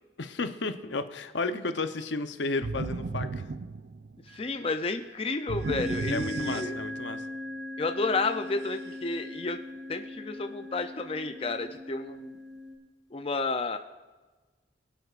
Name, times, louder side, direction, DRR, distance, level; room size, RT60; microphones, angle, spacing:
voice 1, 0.2-3.5 6.1-7.3, left 3 dB, 80° left, 9 dB, 0.8 m, -33 dB
sound 1, 2.6-4.4 5.5-7.1, right 4 dB, 60° right, 0.4 m, -35 dB
voice 2, 4.3-6.8 7.8-9.6 9.9-12.4 13.1-13.8, left 3 dB, 30° left, 7 dB, 0.5 m, -31 dB
sound 2, 4.3-4.8 5.6-12.7, left 1 dB, 80° right, 1.6 m, -39 dB
24.0 x 8.1 x 2.5 m, 1.3 s
head